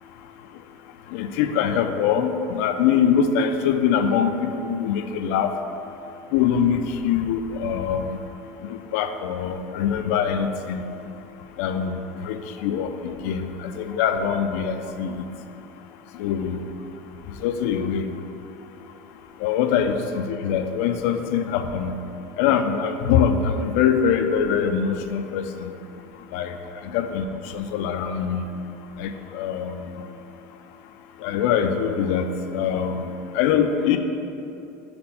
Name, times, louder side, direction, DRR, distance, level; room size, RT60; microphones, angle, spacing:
voice 1, 1.1-5.5 6.3-8.2 8.7-10.8 11.6-11.9 12.2-15.2 16.2-16.6 17.4-18.0 19.4-21.9 22.4-25.7 26.3-26.5 26.8-27.3 27.5-28.4 29.0-29.8 31.2-32.3 32.5-33.1 33.3-34.0, left 7 dB, 75° left, 8 dB, 0.4 m, -23 dB
4.8 x 4.3 x 5.3 m, 2.8 s
cardioid pair, 160°, 8 cm